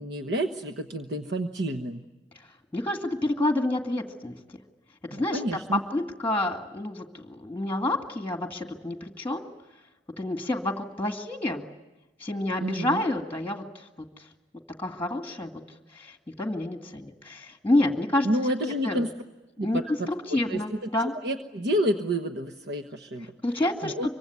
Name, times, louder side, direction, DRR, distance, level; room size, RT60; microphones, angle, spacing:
voice 1, 0.0-2.0 5.1-5.8 12.6-13.0 18.2-19.1 19.6-23.3 23.8-24.1, right 1 dB, 60° right, 5 dB, 1.2 m, -29 dB
voice 2, 2.7-4.4 5.1-9.5 10.2-11.6 12.2-13.9 14.8-15.6 15.9-18.3 18.8-19.0 19.6-21.1 23.4-24.1, left 1 dB, 10° left, 5 dB, 2.1 m, -28 dB
26.0 x 24.0 x 9.5 m, 1.1 s
head